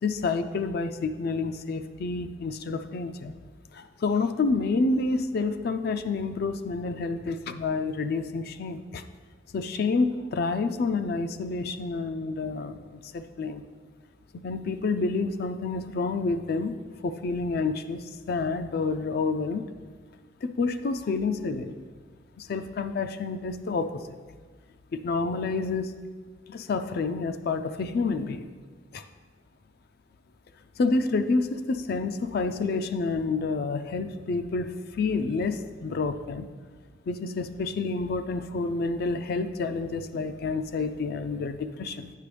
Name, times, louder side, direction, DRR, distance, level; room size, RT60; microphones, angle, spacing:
voice 1, 0.0-3.3 3.7-9.0 9.5-13.6 14.4-16.8 17.0-19.7 20.4-21.7 22.4-24.0 24.9-25.9 26.5-28.5 28.9-29.0 30.8-36.5 37.1-42.1, left 3 dB, 55° left, 9 dB, 0.4 m, -29 dB
8.4 x 5.9 x 3.3 m, 1.4 s
head